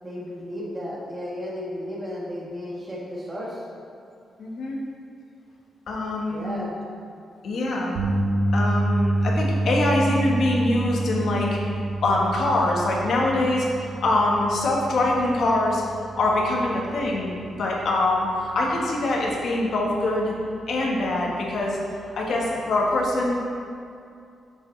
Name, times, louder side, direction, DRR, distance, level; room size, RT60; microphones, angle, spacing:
voice 1, 0.0-3.6 6.3-6.8, equal, 20° right, -5 dB, 1.6 m, -33 dB
voice 2, 4.4-4.8 5.9-6.4 7.4-7.9 8.5-11.6 12.0-15.8 16.2-20.3 20.7-21.8 22.1-23.5, left 2 dB, 65° left, -2 dB, 1.3 m, -24 dB
sound 1, 8.0-20.2 20.5-20.8 23.0-23.1, right 1 dB, 90° right, 0.8 m, -28 dB
7.1 x 6.5 x 3.2 m, 2.5 s
cardioid pair, 125°, 0 cm